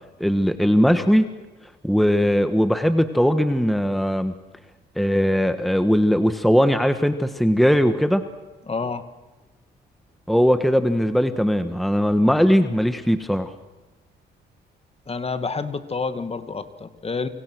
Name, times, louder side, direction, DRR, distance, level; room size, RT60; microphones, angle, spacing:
voice 1, 0.2-1.3 1.8-4.3 5.0-8.2 10.3-13.5, equal, ahead, 9 dB, 1.5 m, -19 dB
voice 2, 8.7-9.1 15.1-17.3, left 4 dB, 30° left, 10 dB, 2.1 m, -28 dB
29.5 x 25.0 x 6.3 m, 1.1 s
cardioid pair, 90°, 20 cm